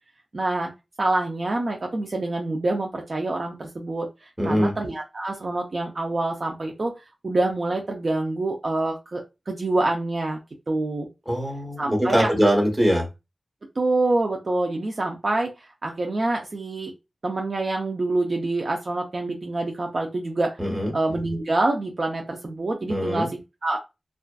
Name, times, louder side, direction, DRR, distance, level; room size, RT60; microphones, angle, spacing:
voice 1, 0.3-0.7 1.0-4.1 4.4-6.9 7.2-10.4 10.7-11.1 11.8-12.3 13.8-16.9 17.2-20.5 20.9-23.8, right 2 dB, 55° right, 1 dB, 0.5 m, -26 dB
voice 2, 4.4-4.7 11.3-13.0 20.6-20.9 22.9-23.3, equal, 15° right, 0 dB, 1.1 m, -22 dB
2.4 x 2.2 x 2.3 m, 0.25 s
wide cardioid pair, 60°, 0 cm